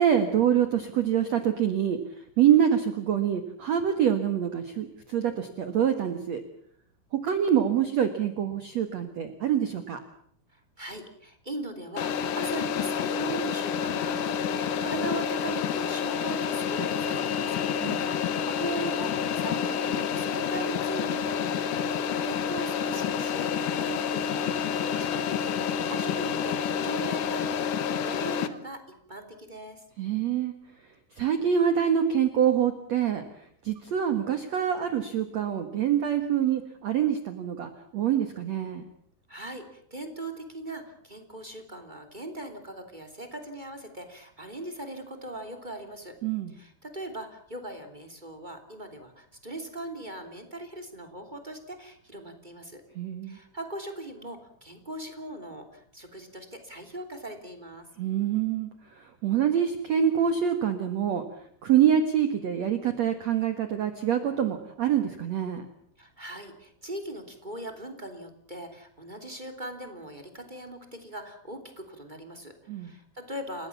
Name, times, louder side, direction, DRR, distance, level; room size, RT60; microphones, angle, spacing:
voice 1, 0.0-2.0 2.4-6.4 7.1-10.0 17.8-18.1 30.0-30.5 31.2-33.2 33.6-38.8 46.2-46.5 52.9-53.4 58.0-58.7 59.0-61.2 61.6-65.6 72.7-72.9, right 9 dB, 70° right, 8 dB, 1.6 m, -25 dB
voice 2, 10.5-17.6 18.0-28.8 29.1-29.8 39.3-46.1 46.5-52.8 53.2-57.8 66.0-73.7, right 1 dB, 15° right, 7 dB, 2.1 m, -40 dB
sound 1, 12.0-28.5, left 7 dB, 80° left, 1.8 m, -29 dB
30.0 x 17.5 x 7.2 m, 0.66 s
omnidirectional pair, 5.6 m